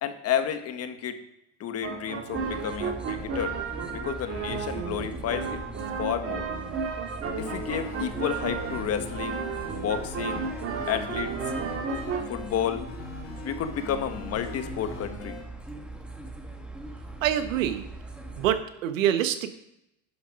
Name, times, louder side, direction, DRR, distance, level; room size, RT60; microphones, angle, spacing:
voice 1, 0.0-1.2 1.6-3.5 3.9-5.6 6.0-6.5 7.4-9.5 9.7-10.5 10.9-11.3 12.3-12.8 13.4-15.4, left 9 dB, 40° left, 8 dB, 1.4 m, -31 dB
sound 1, 1.8-12.2, right 5 dB, 35° right, 2.2 m, -33 dB
sound 2, 2.3-18.6, right 2 dB, 5° right, 1.7 m, -41 dB
sound 3, 7.3-15.4, left 3 dB, 85° left, 4.2 m, -42 dB
voice 2, 17.2-17.8 18.4-19.5, right 10 dB, 80° right, 9 dB, 1.4 m, -25 dB
11.5 x 6.5 x 5.3 m, 0.83 s
hypercardioid pair, 105°, 39 cm